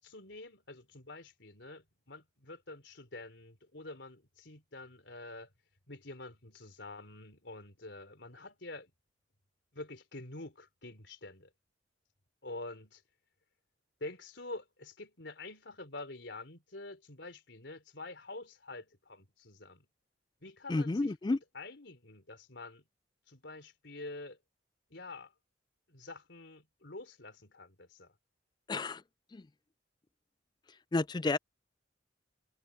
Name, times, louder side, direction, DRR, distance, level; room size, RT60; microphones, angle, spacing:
voice 1, 0.0-5.5 5.9-8.9 9.7-11.5 12.4-13.0 14.0-19.9 20.4-22.9 23.3-24.4 24.9-25.3 25.9-28.1, left 2 dB, 70° left, 4.3 m, -47 dB
voice 2, 20.7-21.4 28.7-29.0 29.3-29.5 30.9-31.4, left 3 dB, 25° left, 0.4 m, -31 dB
head